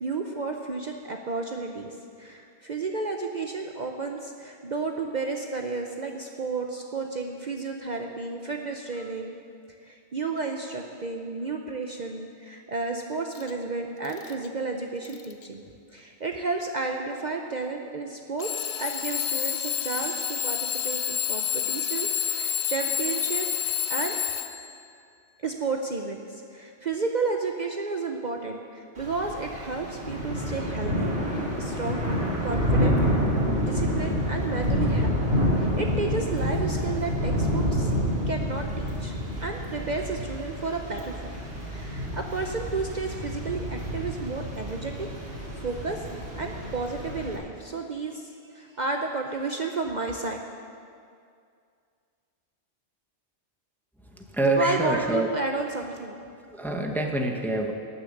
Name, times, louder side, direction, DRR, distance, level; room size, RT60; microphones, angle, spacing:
voice 1, 0.0-9.3 9.8-15.6 15.9-24.2 25.4-32.0 32.4-32.9 33.6-37.9 38.3-39.1 39.4-50.4 54.6-56.2, right 3 dB, 45° right, 3 dB, 0.8 m, -32 dB
Alarm / Clock, 13.4-13.5 14.0-14.5 15.0-15.4 16.3-16.4 18.4-24.8, left 9 dB, 70° left, 0.9 m, -29 dB
Thunder / Rain, 29.0-47.4, equal, 65° right, 2.9 m, -28 dB
voice 2, 54.3-55.3 56.5-57.7, right 2 dB, ahead, 3 dB, 0.9 m, -25 dB
18.5 x 6.8 x 6.5 m, 2.3 s
omnidirectional pair, 1.2 m